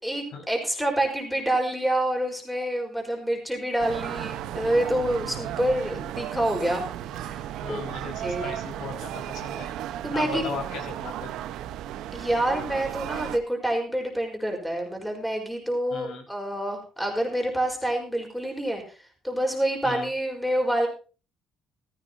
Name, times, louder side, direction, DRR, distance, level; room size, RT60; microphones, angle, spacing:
voice 1, 0.0-6.8 7.1-7.8 8.2-8.6 10.0-10.4 12.1-18.8 19.2-20.9, right 1 dB, ahead, 1 dB, 4.8 m, -27 dB
sound 1, 3.8-13.4, right 11 dB, 80° right, 1.1 m, -35 dB
voice 2, 7.6-9.7 10.1-11.3 15.9-16.2 19.8-20.1, left 4 dB, 70° left, 2 dB, 5.5 m, -37 dB
15.5 x 14.5 x 2.9 m, 0.35 s
cardioid pair, 125°, 0 cm